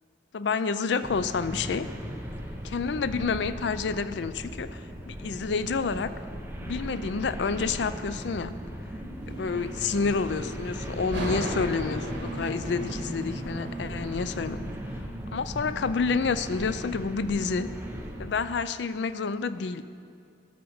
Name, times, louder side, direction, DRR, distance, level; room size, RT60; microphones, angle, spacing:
voice 1, 0.3-1.9 2.6-4.8 5.1-6.1 6.6-8.5 9.3-14.6 15.3-17.7 18.2-19.8, left 5 dB, 70° left, 13 dB, 0.4 m, -29 dB
sound 1, 1.0-18.3, equal, 15° right, 0.9 m, -37 dB
sound 2, 10.9-14.6, right 1 dB, 65° right, 1.8 m, -37 dB
12.5 x 5.2 x 7.0 m, 2.4 s
head